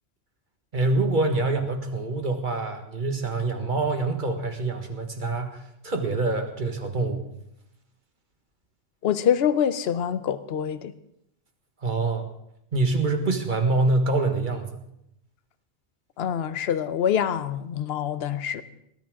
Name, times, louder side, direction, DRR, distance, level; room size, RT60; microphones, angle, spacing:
voice 1, 0.7-7.2 11.8-12.3 12.7-14.8, right 2 dB, 40° right, 5 dB, 1.7 m, -25 dB
voice 2, 9.0-10.9 16.2-18.6, left 8 dB, 60° left, 13 dB, 0.9 m, -25 dB
19.0 x 12.5 x 3.7 m, 0.79 s
omnidirectional pair, 1.2 m